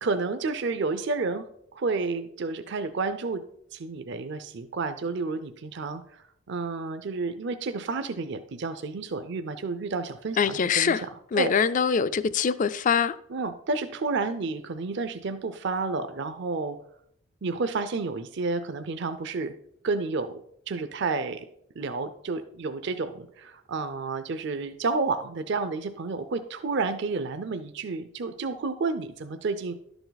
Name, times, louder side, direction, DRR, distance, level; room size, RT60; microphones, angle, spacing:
voice 1, 0.0-1.4 1.7-3.4 3.7-11.5 13.3-16.8 17.4-19.5 19.8-20.4 20.7-21.5 21.8-29.7, right 4 dB, 55° right, 0.5 m, -30 dB
voice 2, 10.4-11.0 11.3-13.2, left 6 dB, 40° left, 0.3 m, -23 dB
11.5 x 6.9 x 4.0 m
head